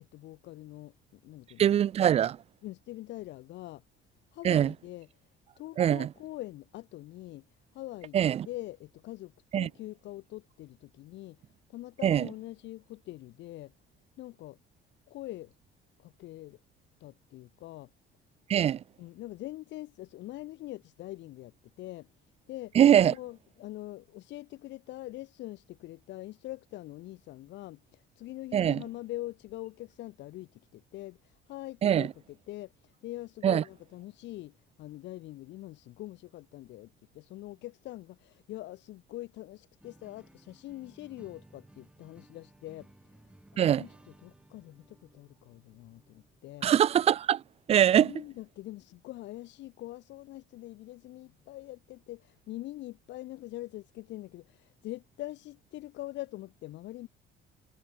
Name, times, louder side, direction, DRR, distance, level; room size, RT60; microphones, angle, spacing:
voice 1, 0.1-1.8 2.6-3.8 4.3-5.1 5.6-7.5 7.7-8.2 8.4-13.7 14.2-14.6 15.1-15.5 16.0-16.6 17.0-17.9 19.0-22.1 22.5-43.2 43.5-43.9 44.2-46.7 48.0-57.1, left 16 dB, 65° left, 2.1 m, -43 dB
voice 2, 1.6-2.4 4.4-4.7 5.8-6.1 8.1-8.5 9.5-9.7 12.0-12.3 18.5-18.8 22.8-23.1 28.5-28.8 31.8-32.1 33.4-33.6 43.6-43.8 46.6-47.4 47.7-48.1, right 10 dB, 30° right, 0.4 m, -23 dB
sound 1, 39.8-48.5, right 1 dB, 5° right, 2.7 m, -59 dB
cardioid pair, 160°, 20 cm